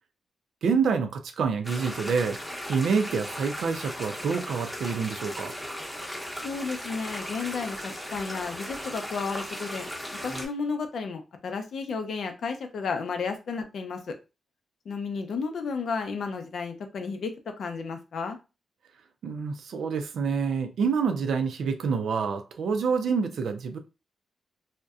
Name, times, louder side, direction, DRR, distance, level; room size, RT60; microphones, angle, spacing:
voice 1, 0.6-2.4 2.7-5.5 19.2-23.8, right 5 dB, 85° right, 0.4 m, -27 dB
sound 1, 1.6-10.5, equal, 5° left, 0.7 m, -37 dB
voice 2, 6.4-9.9 10.2-14.1 14.9-17.3 17.6-18.4, left 5 dB, 70° left, 0.5 m, -32 dB
2.6 x 2.1 x 2.3 m
wide cardioid pair, 110°, 0 cm